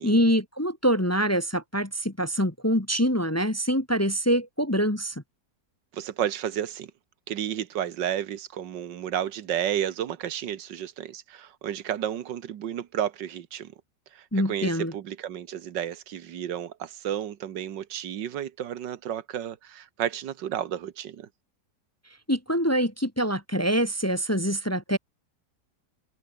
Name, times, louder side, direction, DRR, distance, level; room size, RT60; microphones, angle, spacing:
voice 1, 0.0-5.2 14.3-14.9 22.3-25.0, equal, 10° left, 1.1 m, -25 dB
voice 2, 5.9-6.9 7.3-13.7 14.1-21.3, right 10 dB, 85° right, 1.8 m, -32 dB
omnidirectional pair, 1.9 m